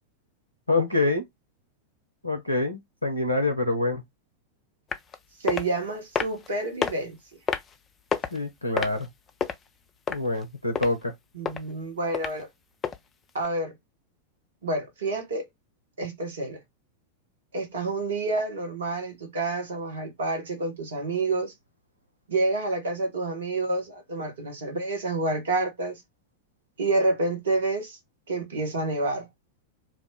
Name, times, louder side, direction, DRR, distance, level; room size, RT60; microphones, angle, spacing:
voice 1, 0.7-1.2 2.2-4.0 8.3-9.1 10.1-11.1, left 2 dB, 85° left, 0.5 m, -26 dB
sound 1, 4.9-5.2 5.5-5.7 6.2-6.5 6.8-6.9 7.5-7.7 8.1-8.4 8.8-9.5 10.1-10.4 10.8-10.9 11.5-11.6 12.1-12.3 12.8-13.0 13.4-13.5, left 6 dB, 25° left, 0.4 m, -27 dB
voice 2, 5.4-7.2 11.3-12.5 13.3-13.7 14.6-15.5 16.0-16.6 17.5-21.5 22.3-26.0 26.8-28.0 28.3-29.3, right 2 dB, 65° right, 1.1 m, -28 dB
2.4 x 2.0 x 3.6 m
figure-of-eight pair, 90°, 0 cm